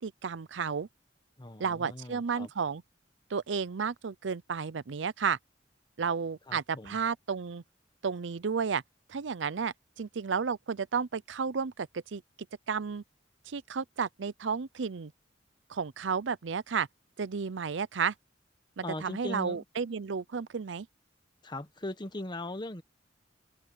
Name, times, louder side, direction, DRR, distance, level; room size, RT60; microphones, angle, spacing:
voice 1, 0.0-0.9 1.6-2.8 3.3-5.4 6.0-7.6 8.0-8.8 9.1-12.2 12.7-13.0 13.5-15.1 15.7-16.9 17.2-18.1 18.8-20.9, right 6 dB, 80° right, 0.6 m, -32 dB
voice 2, 1.4-2.5 6.5-7.0 18.8-19.6 21.4-22.8, left 1 dB, 25° left, 1.3 m, -39 dB
head